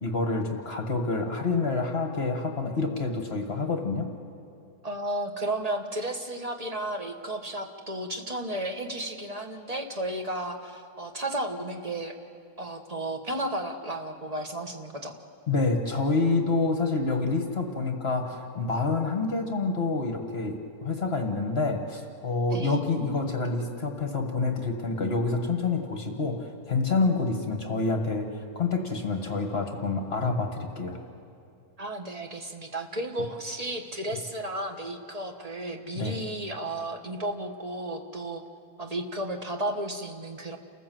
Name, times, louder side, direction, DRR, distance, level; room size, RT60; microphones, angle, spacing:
voice 1, 0.0-4.1 15.5-31.0 35.9-36.2, left 3 dB, 40° left, 4 dB, 1.6 m, -27 dB
voice 2, 4.8-12.1 12.6-15.2 22.5-22.8 31.8-38.4 38.8-40.6, right 1 dB, 25° right, 4 dB, 1.3 m, -33 dB
29.0 x 14.5 x 7.7 m, 2.5 s
omnidirectional pair, 1.7 m